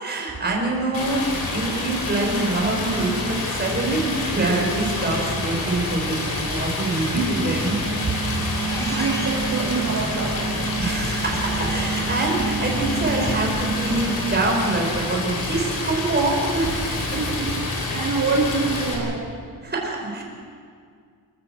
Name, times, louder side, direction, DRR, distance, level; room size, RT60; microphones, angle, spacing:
voice 1, 0.0-8.1 10.8-17.5 19.6-20.2, right 2 dB, 25° right, -1 dB, 4.8 m, -25 dB
Stream, 0.9-19.0, left 2 dB, 60° left, 4.5 m, -28 dB
sound 1, 2.6-19.1, left 2 dB, 90° left, 7.4 m, -37 dB
sound 2, 7.6-14.1, right 5 dB, 5° left, 4.7 m, -30 dB
voice 2, 8.8-10.8 17.2-17.5 17.9-19.2, right 4 dB, 50° right, -5 dB, 3.1 m, -26 dB
27.5 x 13.5 x 7.8 m, 2.1 s
wide cardioid pair, 175°, 40 cm